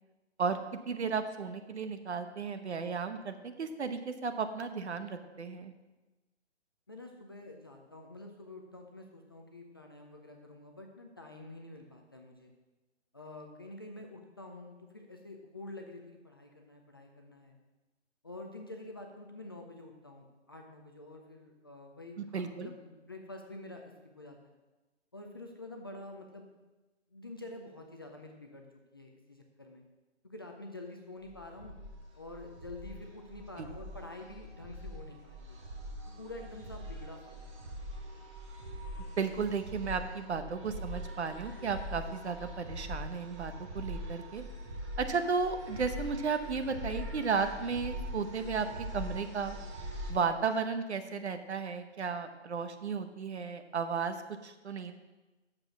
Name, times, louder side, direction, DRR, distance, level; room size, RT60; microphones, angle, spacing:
voice 1, 0.4-5.7 22.2-22.7 33.6-33.7 39.2-44.4 45.0-49.6 50.1-54.2 54.4-54.9, right 5 dB, 65° right, 9 dB, 1.1 m, -34 dB
voice 2, 6.9-12.5 13.1-17.6 18.2-24.5 25.1-26.5 27.1-28.7 28.9-29.8 30.2-31.8 32.2-35.6 36.1-37.5, left 2 dB, 20° left, 2 dB, 0.4 m, -48 dB
sound 1, 31.3-50.1, equal, 25° right, 1.3 m, -42 dB
7.8 x 7.0 x 6.0 m, 1.1 s
hypercardioid pair, 155°, 36 cm